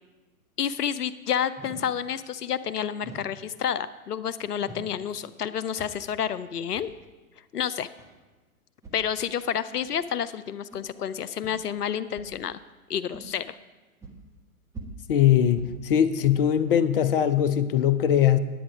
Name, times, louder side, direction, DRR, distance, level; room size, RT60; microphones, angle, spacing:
voice 1, 0.6-6.9 7.5-7.9 8.9-12.6 12.9-13.6, left 8 dB, 85° left, 14 dB, 0.6 m, -29 dB
sound 1, 1.6-1.9 3.0-3.4 4.6-5.0 5.7-6.1 6.7-6.9 8.0-8.1 8.8-9.0 9.8-9.9 10.7-10.8 11.4-11.5 12.1-12.4 13.1-13.3 14.0-14.2 14.7-15.1 15.6-15.8 16.2-16.4, right 2 dB, 5° right, 1.1 m, -43 dB
voice 2, 15.1-18.4, left 10 dB, 40° left, 13 dB, 0.5 m, -21 dB
10.0 x 8.6 x 4.9 m, 1.2 s
figure-of-eight pair, 115°, 46 cm